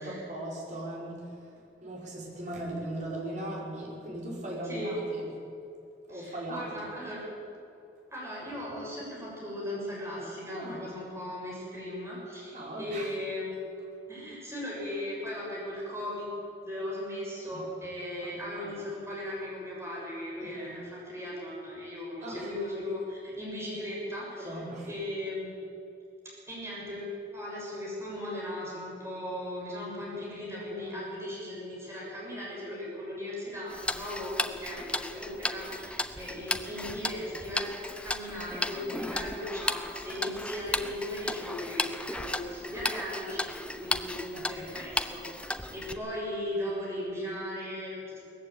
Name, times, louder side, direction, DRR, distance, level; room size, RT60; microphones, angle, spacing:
voice 1, 0.0-1.5 1.8-5.3 6.1-6.9 10.5-10.8 12.5-13.1 17.5-17.6 18.2-18.7 20.4-20.7 22.2-22.5 24.3-24.9 30.8-31.0 44.3-44.7, right 1 dB, 45° right, -4 dB, 5.8 m, -39 dB
voice 2, 4.6-5.0 6.1-7.2 8.1-13.6 14.1-16.3 16.6-25.5 26.5-48.2, left 1 dB, 15° right, -5 dB, 6.9 m, -37 dB
Tick-tock, 33.7-45.9, left 2 dB, 5° left, 0.8 m, -35 dB
20.0 x 14.5 x 9.0 m, 2.7 s
head